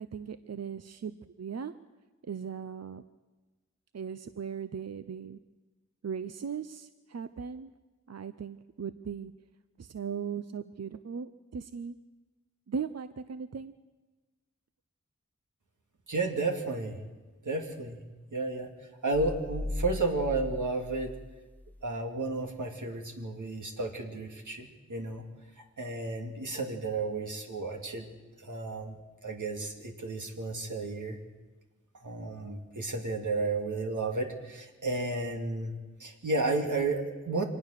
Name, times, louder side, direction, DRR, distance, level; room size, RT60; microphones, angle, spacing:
voice 1, 0.0-1.7 2.2-3.0 3.9-5.4 6.0-7.7 8.1-9.3 9.8-12.0 12.7-13.7, right 6 dB, 60° right, 11 dB, 0.6 m, -38 dB
voice 2, 16.1-17.0 17.4-18.0 18.3-18.7 19.0-21.2 21.8-25.2 25.8-28.1 28.4-29.0 29.2-31.2 32.0-35.7 36.0-37.4, right 3 dB, 90° right, 2 dB, 2.5 m, -32 dB
sound 1, 19.1-22.0, left 1 dB, 5° left, 0.7 m, -38 dB
24.5 x 19.0 x 6.6 m, 1.2 s
wide cardioid pair, 60°, 29 cm